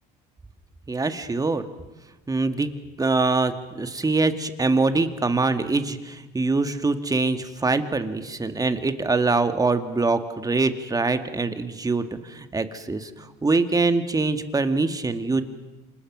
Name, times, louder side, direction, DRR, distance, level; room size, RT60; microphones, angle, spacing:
voice 1, 0.9-1.6 2.3-2.7 3.0-15.4, right 3 dB, 20° right, 8 dB, 2.1 m, -24 dB
29.0 x 25.5 x 6.3 m, 1.1 s
supercardioid pair, 95°, 20 cm